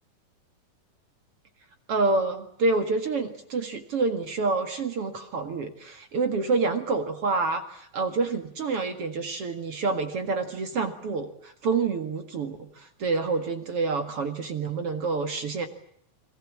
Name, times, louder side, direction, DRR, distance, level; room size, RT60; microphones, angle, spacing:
voice 1, 1.9-15.7, right 3 dB, 45° right, 7 dB, 2.4 m, -28 dB
30.0 x 22.0 x 7.4 m, 0.68 s
omnidirectional pair, 4.1 m